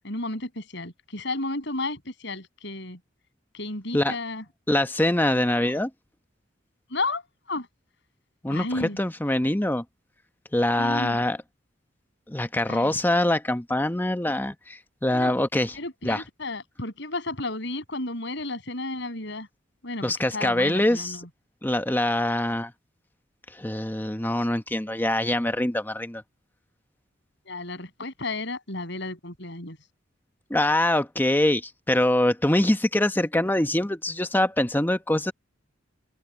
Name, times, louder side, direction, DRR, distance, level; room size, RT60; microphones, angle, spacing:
voice 1, 0.0-3.0 3.5-4.4 6.9-7.2 7.5-7.7 8.5-9.0 10.8-11.3 12.7-13.0 15.1-15.3 15.7-19.5 19.8-21.3 27.5-29.8, left 2 dB, 65° left, 8.0 m, -33 dB
voice 2, 4.7-5.9 8.4-9.8 10.5-11.4 12.3-15.8 16.0-16.2 20.0-21.2 21.6-22.7 23.5-26.2 30.5-35.3, left 1 dB, 10° left, 0.9 m, -24 dB
head